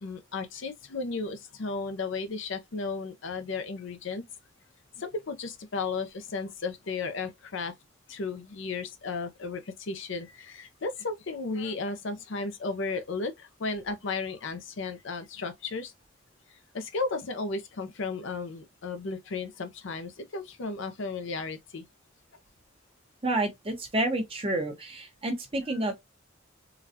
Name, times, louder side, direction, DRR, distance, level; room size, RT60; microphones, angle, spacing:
voice 1, 0.0-4.2 5.0-7.7 8.1-15.9 16.5-21.8, left 4 dB, 65° left, 0.6 m, -34 dB
voice 2, 23.2-25.9, right 2 dB, 30° right, 1.0 m, -29 dB
3.8 x 2.3 x 2.7 m
head